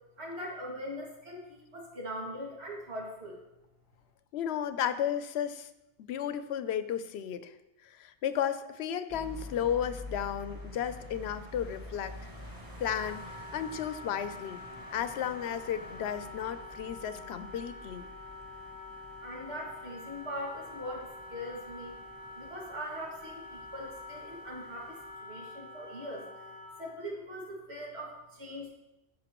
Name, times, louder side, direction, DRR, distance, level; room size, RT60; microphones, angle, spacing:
voice 1, 0.2-3.4 19.2-21.9 22.4-28.7, equal, 80° right, -3 dB, 2.4 m, -41 dB
voice 2, 4.3-5.7 6.0-7.5 7.8-12.3 12.8-14.6 14.9-18.0, left 9 dB, 80° left, 12 dB, 0.8 m, -34 dB
sound 1, 9.1-25.1, left 1 dB, 20° right, 1.3 m, -48 dB
Wind instrument woodwind instrument, 12.9-27.0, left 2 dB, 25° left, 0.6 m, -47 dB
14.0 x 5.5 x 3.0 m, 0.93 s
omnidirectional pair, 1.1 m